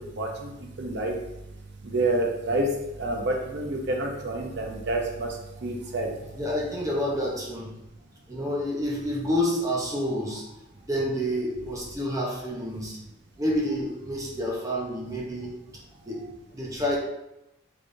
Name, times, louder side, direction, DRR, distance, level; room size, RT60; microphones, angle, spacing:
voice 1, 0.1-0.5 0.8-1.1 1.8-2.7 3.0-6.1, right 2 dB, 55° right, 1 dB, 0.7 m, -28 dB
voice 2, 6.3-7.7 8.3-10.5 10.9-13.0 13.4-15.6 16.0-17.0, equal, 15° right, -3 dB, 0.6 m, -29 dB
3.5 x 3.5 x 2.6 m, 0.89 s
head